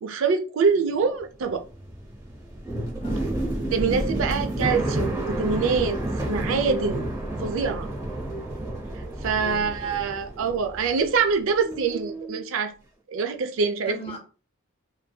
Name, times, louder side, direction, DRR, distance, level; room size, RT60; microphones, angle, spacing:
voice 1, 0.0-1.6 3.7-6.0 6.2-7.1 7.4-7.9 9.2-12.7 13.1-14.0, right 5 dB, 65° right, 0.4 m, -25 dB
sound 1, 1.2-11.3 11.6-12.4, right 1 dB, 15° right, 0.6 m, -30 dB
voice 2, 3.0-3.4 9.3-10.0 13.8-14.2, equal, 25° left, 0.6 m, -41 dB
2.6 x 2.6 x 2.2 m
head